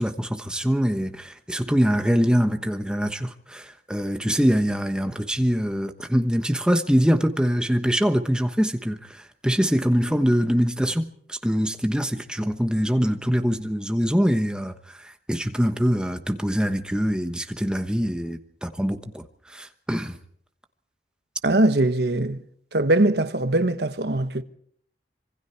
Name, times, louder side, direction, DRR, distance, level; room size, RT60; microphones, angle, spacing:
voice 1, 0.0-20.2, equal, 5° right, 1.1 m, -24 dB
voice 2, 21.4-22.4 22.7-24.4, right 1 dB, 70° right, 1.2 m, -21 dB
26.0 x 23.5 x 4.6 m
head